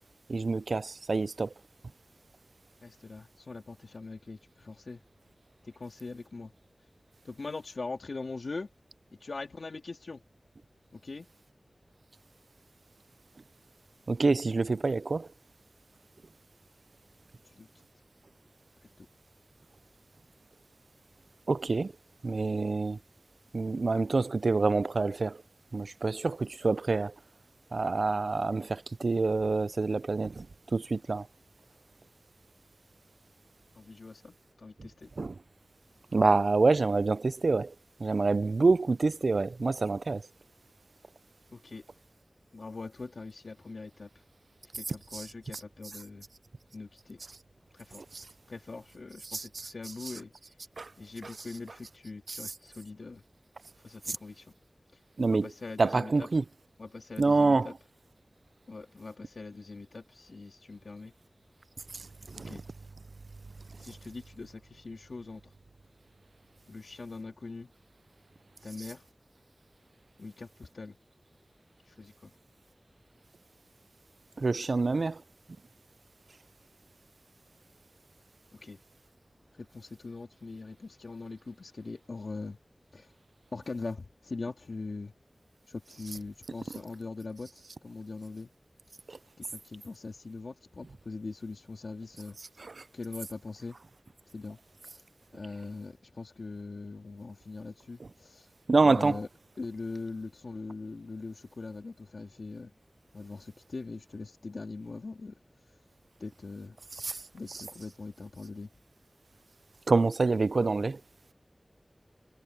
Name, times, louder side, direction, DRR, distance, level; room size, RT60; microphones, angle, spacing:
voice 1, 0.3-1.5 14.1-15.3 21.5-21.9 22.2-23.0 23.5-25.4 25.7-27.1 27.7-30.5 30.7-31.3 35.2-35.4 36.1-37.7 38.0-40.2 45.1-45.3 48.1-48.2 49.2-49.7 50.0-50.1 50.8-50.9 51.2-51.3 52.3-52.4 54.1-54.2 55.2-55.5 55.8-56.4 57.2-57.7 61.9-62.5 74.4-75.2 89.1-89.2 92.6-92.8 98.7-99.2 107.0-107.2 109.9-111.0, right 3 dB, 85° right, 0.3 m, -27 dB
voice 2, 2.8-5.0 5.6-6.5 7.2-8.7 9.2-10.2 10.9-11.3 17.4-17.7 19.0-19.1 33.7-35.1 41.5-41.8 42.5-44.1 44.7-46.3 46.7-47.2 47.7-48.0 48.5-50.3 51.0-53.2 53.8-54.5 55.3-56.3 56.8-57.7 58.7-61.1 62.4-62.6 63.8-65.4 66.7-67.7 68.6-69.0 70.2-71.0 71.9-72.3 78.5-78.8 79.6-82.6 82.9-83.1 83.5-85.1 85.7-88.5 89.4-92.4 92.9-93.8 94.3-95.0 95.3-98.5 98.8-99.3 99.6-102.7 103.1-105.4 106.2-106.8 107.3-108.7, left 3 dB, 90° left, 2.9 m, -42 dB
wide cardioid pair, 55°, 0 cm